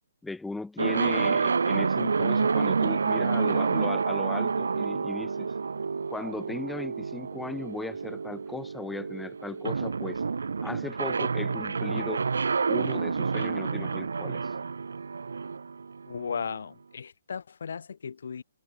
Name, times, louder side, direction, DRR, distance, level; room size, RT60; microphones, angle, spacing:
voice 1, 0.2-5.5 6.1-10.2 10.6-12.2 12.7-14.4, left 2 dB, 5° left, 3.3 m, -37 dB
sound 1, 0.8-16.5, right 5 dB, 80° right, 2.6 m, -28 dB
voice 2, 16.1-18.4, left 6 dB, 70° left, 3.2 m, -36 dB
hypercardioid pair, 145°, 0 cm